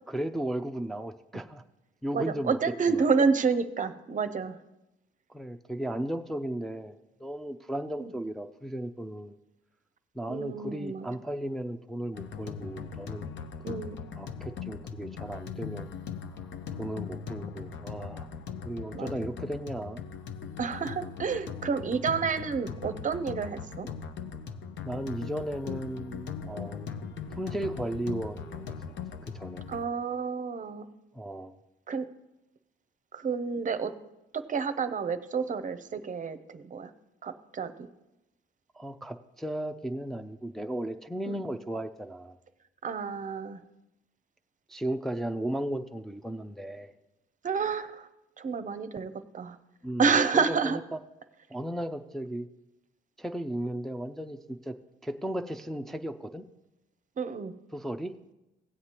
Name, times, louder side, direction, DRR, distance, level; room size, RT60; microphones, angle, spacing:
voice 1, 0.1-1.6 2.0-3.1 5.3-9.4 10.1-13.3 13.7-13.8 14.1-15.9 16.3-16.4 16.8-18.3 18.6-20.0 24.8-26.9 27.3-28.8 29.2-29.6 31.1-31.5 38.7-42.4 44.7-46.9 49.8-51.0 51.5-52.5 53.2-54.7 55.0-56.4 57.7-58.1, right 1 dB, ahead, 4 dB, 0.4 m, -35 dB
voice 2, 2.1-4.6 8.0-8.1 10.3-11.1 13.6-14.0 18.9-19.3 20.6-23.9 29.7-30.9 31.9-32.1 33.1-33.9 34.3-36.9 37.2-37.9 41.3-41.4 42.8-43.6 47.4-48.1 48.4-49.6 50.0-50.8 57.2-57.5, right 5 dB, 40° right, 11 dB, 0.6 m, -29 dB
sound 1, 12.1-29.8, left 6 dB, 70° left, 0.8 m, -40 dB
16.5 x 7.9 x 2.9 m, 0.95 s
cardioid pair, 90°, 20 cm